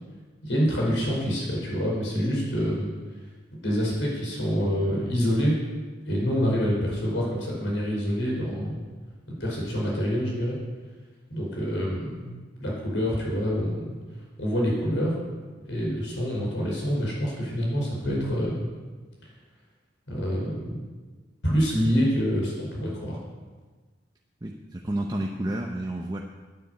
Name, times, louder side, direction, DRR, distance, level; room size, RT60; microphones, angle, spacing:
voice 1, 0.4-2.9 3.6-5.5 6.1-8.8 9.4-10.6 11.3-12.3 12.6-13.8 14.4-15.1 15.7-18.7 20.1-20.8 21.4-23.2, equal, 85° left, -2 dB, 5.0 m, -26 dB
voice 2, 24.4-26.2, right 1 dB, 20° right, 0 dB, 0.8 m, -30 dB
10.5 x 9.6 x 8.1 m, 1.3 s
head